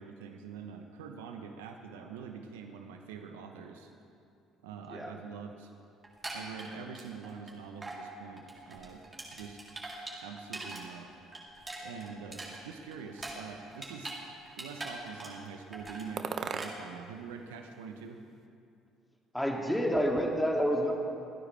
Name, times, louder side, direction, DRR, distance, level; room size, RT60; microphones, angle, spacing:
voice 1, 0.0-3.9 4.6-5.7 6.3-9.0 9.3-9.6 10.2-11.1 11.8-14.2 14.6-18.2, right 6 dB, 80° right, 4 dB, 0.9 m, -45 dB
sound 1, 6.0-7.5 7.8-8.0 8.4-10.8 11.1-14.2 14.5-15.5 15.7-16.1 16.5-16.7, right 2 dB, 25° right, 3.6 m, -42 dB
sound 2, 12.9-14.0 14.6-15.3 16.2-17.1 17.4-18.4, right 6 dB, 50° right, 0.9 m, -42 dB
voice 2, 19.3-20.9, equal, 5° left, 0 dB, 2.6 m, -28 dB
25.5 x 9.8 x 3.4 m, 2.4 s
hypercardioid pair, 60°, 0 cm